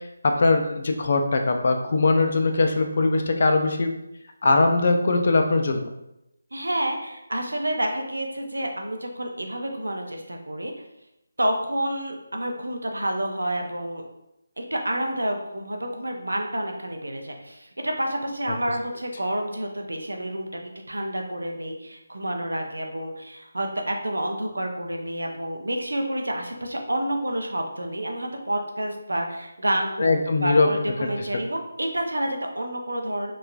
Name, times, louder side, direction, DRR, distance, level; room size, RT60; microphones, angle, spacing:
voice 1, 0.2-3.9 4.4-5.9 30.0-30.7 31.2-31.3, left 3 dB, 50° left, 4 dB, 0.3 m, -21 dB
voice 2, 6.5-10.7 11.4-14.1 14.6-20.5 20.9-33.3, right 1 dB, 80° right, 2 dB, 0.5 m, -29 dB
2.9 x 2.3 x 2.3 m, 0.87 s
figure-of-eight pair, 155°, 0 cm